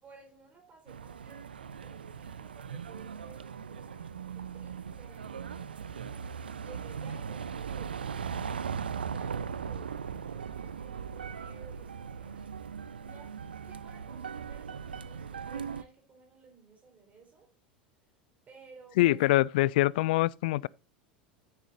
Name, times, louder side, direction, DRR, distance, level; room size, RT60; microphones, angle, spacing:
voice 1, 0.0-6.2 6.6-12.5 12.9-17.5 18.5-19.2, right 4 dB, 30° right, 4.1 m, -56 dB
sound 1, 0.9-15.8, right 6 dB, 85° right, 0.6 m, -39 dB
voice 2, 19.0-20.7, left 17 dB, 65° left, 0.4 m, -24 dB
10.0 x 9.1 x 2.6 m
hypercardioid pair, 85°, 5 cm